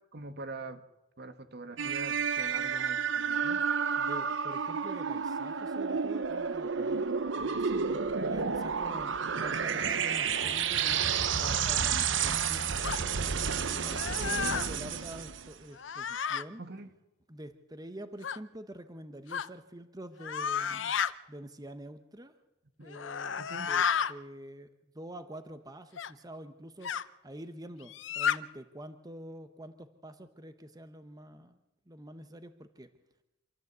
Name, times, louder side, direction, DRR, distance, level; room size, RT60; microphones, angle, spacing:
voice 1, 0.1-0.8 1.2-3.6 7.9-8.4 14.3-14.6 16.6-16.9 22.8-22.9 23.4-23.7, right 2 dB, 60° right, 10 dB, 1.3 m, -43 dB
sound 1, 1.8-15.5, right 6 dB, 75° right, 0.8 m, -31 dB
voice 2, 4.0-12.9 13.2-13.3 13.8-16.6 17.3-20.9 21.3-22.3 22.8-24.7 24.9-31.6 31.9-32.9, right 1 dB, 20° right, 9 dB, 1.0 m, -47 dB
sound 2, 9.8-15.6, left 1 dB, 40° left, 1.1 m, -46 dB
sound 3, 12.8-13.0 13.9-14.7 15.8-16.4 18.2-18.4 19.3-19.5 20.2-21.1 22.9-24.1 26.0-26.1 26.8-27.0 27.9-28.4, left 7 dB, 80° left, 0.7 m, -32 dB
26.0 x 13.5 x 8.1 m, 0.96 s
head